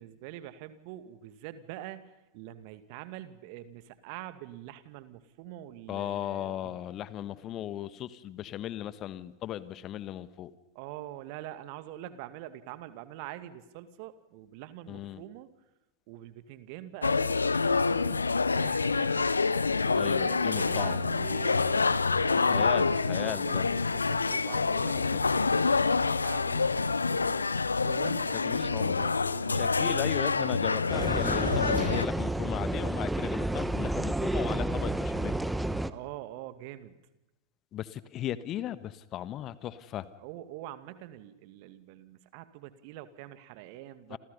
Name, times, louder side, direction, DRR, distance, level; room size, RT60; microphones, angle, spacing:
voice 1, 0.0-6.9 10.7-15.5 16.1-19.3 20.2-27.4 27.8-30.0 35.9-37.0 40.2-44.2, right 13 dB, 50° right, 11 dB, 2.2 m, -45 dB
voice 2, 5.9-10.5 14.9-15.2 19.9-21.0 22.4-23.7 24.9-25.2 28.4-29.0 29.5-35.5 37.7-40.1 44.1-44.2, left 12 dB, 35° left, 15 dB, 1.5 m, -37 dB
sound 1, 17.0-32.1, left 4 dB, 80° left, 1.0 m, -27 dB
sound 2, 30.9-35.9, right 1 dB, 5° right, 1.2 m, -30 dB
28.5 x 28.0 x 5.6 m, 0.97 s
figure-of-eight pair, 90°, 0 cm